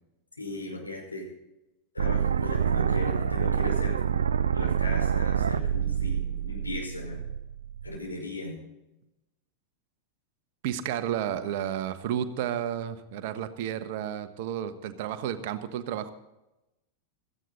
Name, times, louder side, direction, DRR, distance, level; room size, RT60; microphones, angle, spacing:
voice 1, 0.4-1.3 1.9-4.2 4.5-7.2 7.8-8.6, left 2 dB, 80° left, -1 dB, 5.4 m, -37 dB
sound 1, 2.0-8.0, right 8 dB, 70° right, 0.6 m, -27 dB
voice 2, 10.6-16.1, right 10 dB, 50° right, 11 dB, 1.2 m, -32 dB
17.0 x 14.0 x 4.1 m, 0.94 s
figure-of-eight pair, 90°, 0 cm